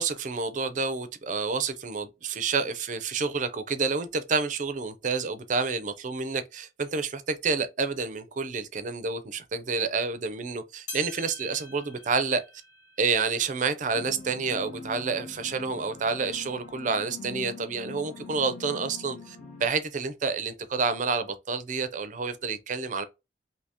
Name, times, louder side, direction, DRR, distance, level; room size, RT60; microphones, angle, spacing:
voice 1, 0.0-12.4 13.0-23.1, right 4 dB, 45° right, 0.5 m, -29 dB
sound 1, 10.9-15.5 16.0-16.1 16.9-17.0 18.0-18.1, left 2 dB, 85° left, 1.7 m, -47 dB
sound 2, 13.9-19.7, left 4 dB, 40° left, 0.7 m, -43 dB
2.7 x 2.7 x 3.5 m
head